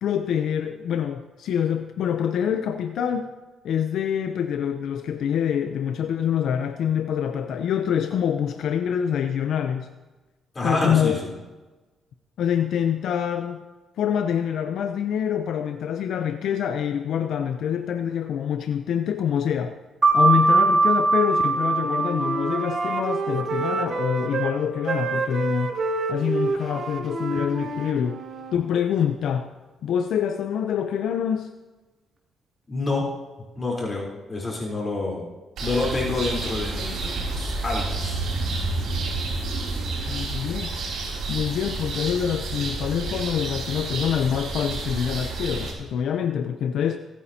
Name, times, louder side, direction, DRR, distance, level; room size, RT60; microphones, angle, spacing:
voice 1, 0.0-3.3 3.6-9.9 10.6-11.2 12.4-13.6 14.0-19.7 20.1-25.8 26.1-28.2 28.5-29.5 29.8-31.5 40.1-40.7 41.3-47.0, left 8 dB, 75° left, 7 dB, 0.7 m, -25 dB
voice 2, 10.5-11.3 32.7-33.2 33.6-35.3 35.6-38.2, left 2 dB, 30° left, -3 dB, 3.8 m, -28 dB
sound 1, 20.0-25.2, right 3 dB, 25° right, 2.5 m, -22 dB
Wind instrument woodwind instrument, 21.5-24.5 24.8-28.6, right 3 dB, 55° right, 1.4 m, -29 dB
sound 2, 35.6-45.7, right 3 dB, 70° right, 4.8 m, -29 dB
24.5 x 9.3 x 2.9 m, 1.2 s
cardioid pair, 90°, 0 cm